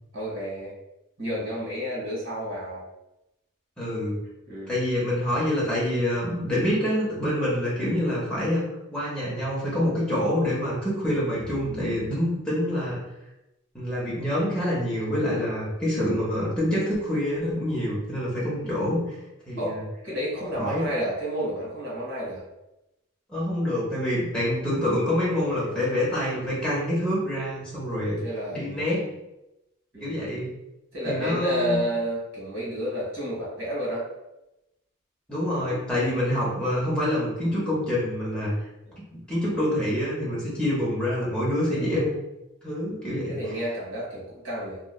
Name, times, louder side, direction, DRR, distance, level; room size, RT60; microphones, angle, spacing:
voice 1, 0.1-0.7 1.2-2.8 4.5-4.8 18.6-19.0 19.6-22.4 25.3-25.9 27.9-28.9 29.9-30.3 30.9-34.1 38.9-39.0 41.7-41.9 43.3-44.8, equal, 80° right, -6 dB, 1.3 m, -31 dB
voice 2, 3.8-4.2 4.7-8.7 8.9-13.0 13.7-19.0 19.5-19.8 20.5-20.9 23.3-28.2 28.5-29.1 30.0-30.5 31.1-31.8 35.3-38.5 39.1-42.1 42.6-43.4, left 1 dB, 5° left, -8 dB, 0.7 m, -26 dB
2.9 x 2.2 x 2.2 m, 0.92 s
head